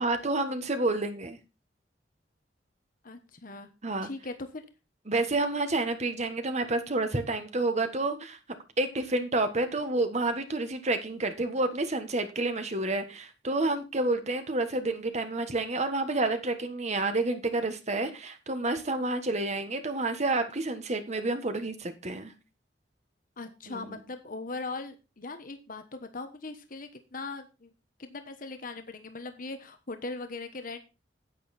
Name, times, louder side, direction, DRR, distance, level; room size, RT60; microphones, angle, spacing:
voice 1, 0.0-1.4 3.8-4.1 5.1-8.4 8.8-22.3 23.7-24.0, right 2 dB, 40° right, 1.4 m, -29 dB
voice 2, 3.0-3.7 4.0-4.6 23.4-27.7 28.0-30.8, left 3 dB, 50° left, 1.2 m, -40 dB
9.2 x 8.9 x 4.3 m
head